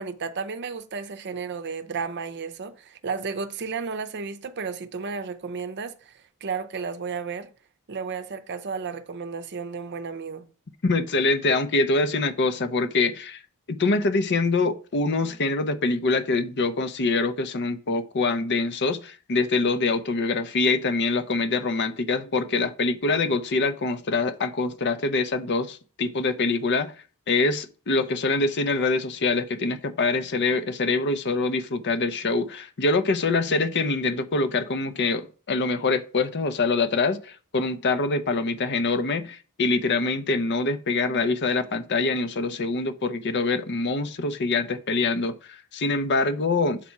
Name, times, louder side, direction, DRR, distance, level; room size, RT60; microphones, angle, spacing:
voice 1, 0.0-7.5 7.9-10.5, right 5 dB, 50° right, 0.6 m, -33 dB
voice 2, 10.8-13.4 13.7-26.9 27.3-46.8, left 3 dB, 50° left, 0.6 m, -24 dB
7.4 x 4.1 x 4.7 m
head